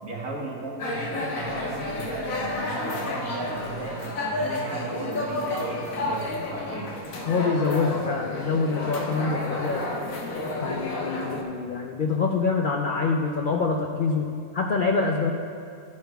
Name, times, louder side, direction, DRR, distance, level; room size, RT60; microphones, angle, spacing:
voice 1, 0.0-7.0, right 2 dB, 75° right, -2 dB, 1.8 m, -35 dB
sound 1, 0.8-11.4, left 2 dB, 65° left, 1.3 m, -31 dB
voice 2, 7.3-9.9 10.6-14.3 14.5-15.3, left 4 dB, 85° left, 1 dB, 0.4 m, -25 dB
13.5 x 9.5 x 2.3 m, 2.4 s
omnidirectional pair, 1.6 m